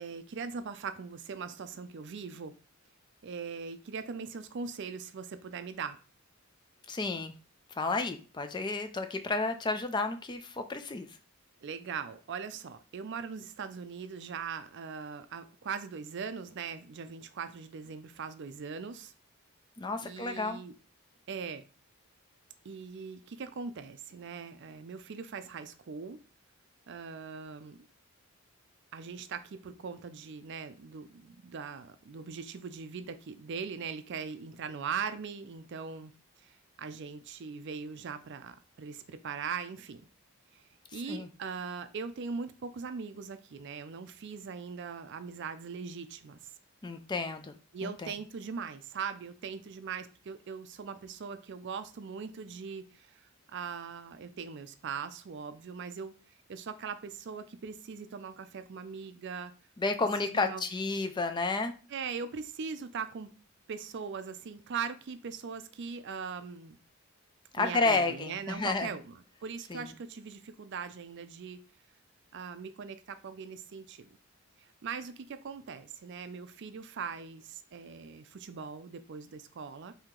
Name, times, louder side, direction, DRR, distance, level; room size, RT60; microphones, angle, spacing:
voice 1, 0.0-2.5 3.2-6.0 11.6-19.1 20.0-20.7 21.3-21.6 22.6-26.2 26.9-27.8 28.9-36.1 36.4-36.5 36.8-40.0 40.5-40.6 40.9-46.4 47.7-56.1 56.5-59.5 60.2-60.6 61.9-63.3 63.7-66.8 67.6-71.6 72.3-74.1 74.6-79.9, right 6 dB, 50° right, 0.4 m, -40 dB
voice 2, 6.9-7.3 7.7-11.2 19.8-20.6 40.9-41.3 46.8-47.5 47.8-48.1 59.8-61.7 67.5-68.9 69.7-69.9, left 3 dB, 20° left, 0.3 m, -31 dB
4.5 x 2.8 x 3.7 m
head